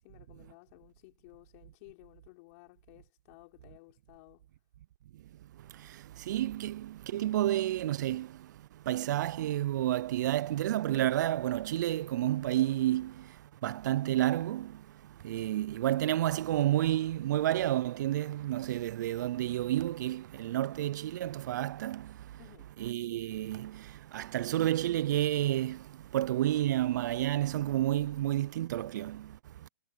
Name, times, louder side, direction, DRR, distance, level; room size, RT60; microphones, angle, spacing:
voice 1, 0.0-4.5 22.4-22.7, left 26 dB, 35° left, 3.7 m, -56 dB
voice 2, 5.6-8.5 8.8-22.4 22.8-29.7, right 13 dB, 45° right, 0.6 m, -30 dB
hypercardioid pair, 140°, 14 cm